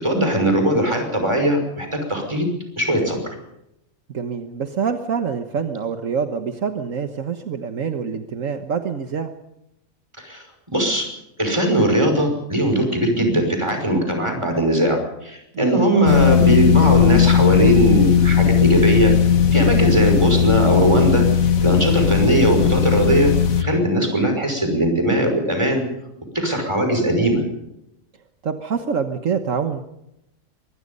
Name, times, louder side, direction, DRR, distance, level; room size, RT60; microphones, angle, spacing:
voice 1, 0.0-2.5 2.8-3.2 10.2-10.4 10.7-11.1 11.4-19.1 19.5-23.3 23.6-25.8 26.3-27.4, right 1 dB, 20° right, 4 dB, 5.8 m, -19 dB
voice 2, 4.1-9.3 15.5-15.8 22.0-22.1 28.4-29.8, right 6 dB, 70° right, 7 dB, 1.6 m, -26 dB
sound 1, 16.1-23.6, left 8 dB, 80° left, 1.7 m, -17 dB
24.5 x 22.0 x 5.5 m, 0.84 s
omnidirectional pair, 1.4 m